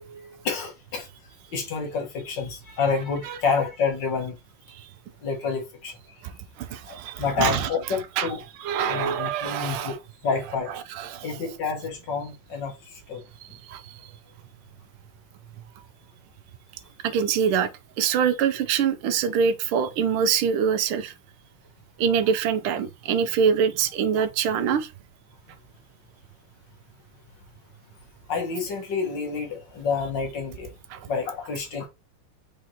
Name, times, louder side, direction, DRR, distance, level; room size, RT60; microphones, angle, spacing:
voice 1, 0.4-1.1 1.5-4.4 5.2-6.0 6.8-8.4 8.9-10.0 10.2-10.7 11.2-13.2 28.3-30.7 31.1-31.9, left 5 dB, 60° left, 1.7 m, -28 dB
voice 2, 6.2-7.7 8.2-8.3 8.6-10.0 10.9-11.4 13.5-14.1 17.0-21.1 22.0-24.9 30.9-31.0, right 7 dB, 85° right, 1.5 m, -25 dB
4.9 x 3.7 x 2.8 m
omnidirectional pair, 2.4 m